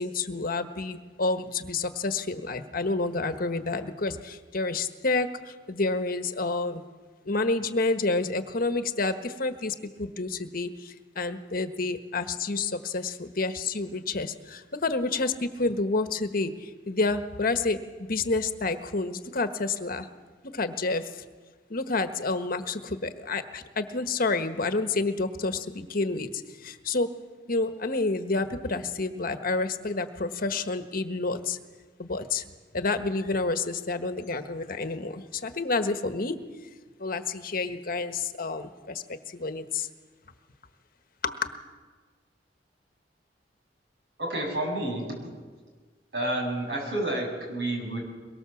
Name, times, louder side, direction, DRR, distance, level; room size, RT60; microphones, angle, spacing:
voice 1, 0.0-6.8 7.2-20.1 20.5-21.2 21.7-27.1 27.5-31.6 32.0-32.4 32.7-36.4 37.0-39.9 41.2-41.5, left 3 dB, 55° left, 9 dB, 1.3 m, -29 dB
voice 2, 44.2-45.1 46.1-48.0, right 1 dB, 70° right, 1 dB, 7.4 m, -29 dB
23.0 x 23.0 x 7.2 m, 1.4 s
head